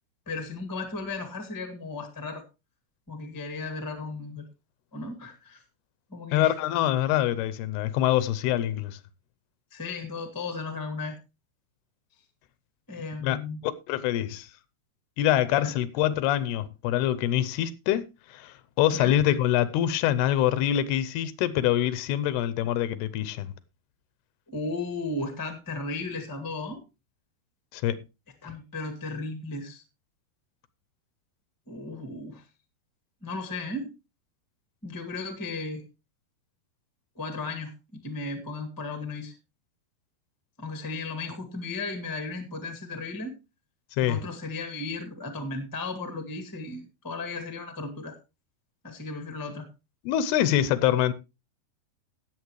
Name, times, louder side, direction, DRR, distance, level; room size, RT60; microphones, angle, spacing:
voice 1, 0.2-2.4 3.1-4.4 4.9-5.6 6.1-6.5 9.7-11.2 12.9-13.6 15.6-15.8 18.9-19.2 24.5-26.8 28.4-29.8 31.7-32.4 33.2-33.9 34.8-35.8 37.1-39.3 40.6-43.3 44.0-48.1 48.8-49.7, left 3 dB, 25° left, 0.4 m, -35 dB
voice 2, 6.3-9.0 13.2-13.4 13.6-14.5 15.2-18.0 18.3-23.5 27.7-28.0 44.0-44.2 50.1-51.1, left 12 dB, 85° left, 2.7 m, -25 dB
18.0 x 7.3 x 3.1 m
omnidirectional pair, 4.6 m